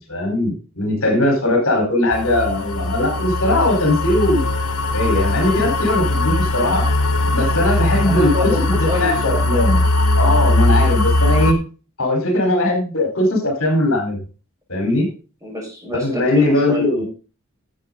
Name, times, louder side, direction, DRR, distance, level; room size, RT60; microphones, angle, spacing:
voice 1, 0.1-4.5 4.9-6.9 7.3-9.8 10.2-11.6 12.0-14.2 14.7-15.1 15.9-17.0, left 1 dB, 70° left, 2 dB, 4.5 m, -19 dB
sound 1, 2.1-11.5, left 2 dB, 90° left, 1.5 m, -19 dB
voice 2, 8.0-9.8 15.4-17.0, left 2 dB, 15° right, -3 dB, 5.8 m, -26 dB
12.5 x 7.5 x 4.0 m, 0.34 s
head